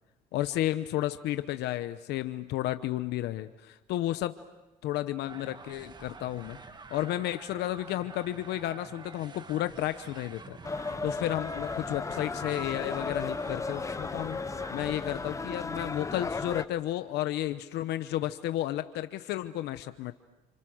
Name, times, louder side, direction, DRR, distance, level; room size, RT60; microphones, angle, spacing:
voice 1, 0.3-4.4 4.8-6.6 6.9-10.6 11.0-14.4 14.7-20.1, left 14 dB, 80° left, 11 dB, 1.0 m, -32 dB
sound 1, 5.3-15.4, right 4 dB, 25° right, 1.6 m, -48 dB
sound 2, 10.6-16.6, left 4 dB, 20° left, 0.8 m, -35 dB
29.5 x 29.5 x 6.4 m, 1.1 s
cardioid pair, 110°, 17 cm